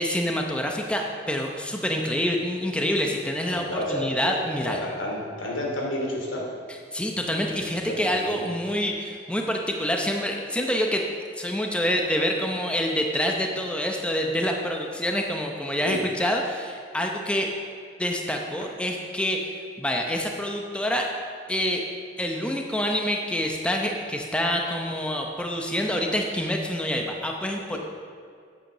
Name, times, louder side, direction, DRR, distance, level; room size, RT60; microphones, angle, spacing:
voice 1, 0.0-4.8 6.7-11.1 11.4-17.5 18.0-21.1 21.5-21.8 22.2-27.8, equal, 5° left, 1 dB, 0.7 m, -27 dB
voice 2, 3.5-4.3 4.7-6.4 8.1-8.5 15.8-16.0 27.7-27.8, left 1 dB, 85° left, -2 dB, 2.6 m, -30 dB
8.7 x 8.6 x 6.6 m, 2.2 s
head